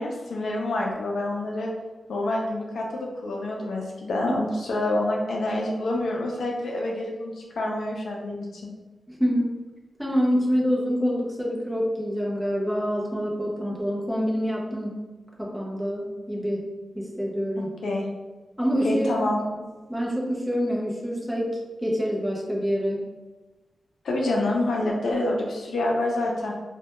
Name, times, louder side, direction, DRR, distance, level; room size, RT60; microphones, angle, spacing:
voice 1, 0.0-1.7 2.1-8.7 17.8-18.1 18.8-19.4 24.0-26.5, left 1 dB, 80° left, -1 dB, 0.3 m, -27 dB
voice 2, 9.1-9.5 10.0-14.9 15.4-16.7 16.9-17.7 18.6-19.3 19.9-23.0, equal, 5° right, -3 dB, 0.4 m, -26 dB
2.1 x 2.1 x 2.8 m, 1.2 s
wide cardioid pair, 160°, 0 cm